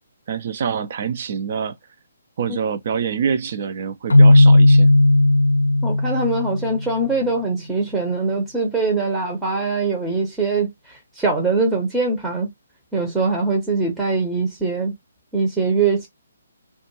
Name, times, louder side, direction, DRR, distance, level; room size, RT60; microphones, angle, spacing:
voice 1, 0.3-1.7 2.4-4.9, right 7 dB, 45° right, 0.4 m, -25 dB
Keyboard (musical), 4.1-7.0, left 2 dB, 65° left, 0.5 m, -14 dB
voice 2, 5.8-12.5 12.9-14.9 15.3-16.1, right 3 dB, 10° right, 0.7 m, -22 dB
2.5 x 2.2 x 2.9 m
figure-of-eight pair, 135°, 0 cm